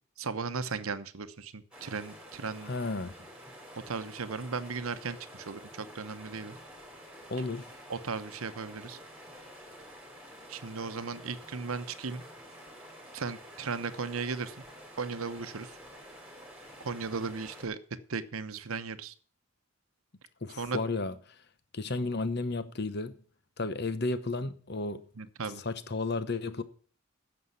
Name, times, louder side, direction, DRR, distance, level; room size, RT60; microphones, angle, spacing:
voice 1, 0.2-2.7 3.9-6.6 7.9-9.0 10.5-12.2 13.1-14.6 15.0-15.8 16.8-17.8 18.1-19.1 20.6-20.8 25.2-25.6, right 4 dB, 80° right, 0.9 m, -36 dB
sound 1, 1.7-17.7, equal, 5° right, 3.1 m, -49 dB
voice 2, 2.6-3.1 7.3-7.7 20.4-21.3 21.7-23.2 23.6-25.0 25.4-26.6, left 3 dB, 50° left, 0.9 m, -33 dB
9.8 x 7.1 x 8.2 m
head